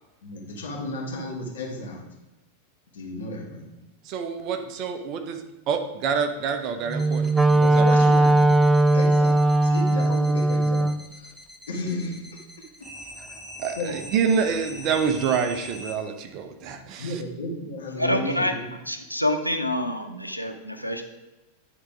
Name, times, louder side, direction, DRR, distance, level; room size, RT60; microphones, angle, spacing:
voice 1, 0.2-2.0 2.9-3.7 7.4-8.6 8.9-11.3 11.7-12.2 13.7-14.0 17.0-18.8, left 1 dB, 65° left, -1 dB, 1.7 m, -33 dB
voice 2, 4.0-7.3 7.8-7.9 13.6-17.2, right 6 dB, 40° right, 7 dB, 0.8 m, -27 dB
sound 1, 6.9-16.0, left 1 dB, 10° left, 1.0 m, -43 dB
Wind instrument woodwind instrument, 6.9-11.0, right 2 dB, 10° right, 0.3 m, -19 dB
voice 3, 18.0-18.5 18.9-21.1, left 1 dB, 90° right, 7 dB, 0.7 m, -26 dB
9.1 x 3.9 x 4.9 m, 1.1 s
figure-of-eight pair, 90°, 0 cm